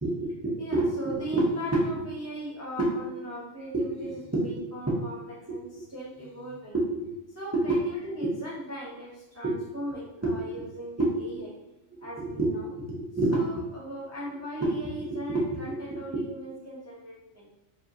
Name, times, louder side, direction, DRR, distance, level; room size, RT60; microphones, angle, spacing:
voice 1, 0.0-11.5 11.9-17.5, right 1 dB, 20° right, -5 dB, 0.5 m, -31 dB
4.9 x 2.8 x 2.6 m, 0.95 s
omnidirectional pair, 1.3 m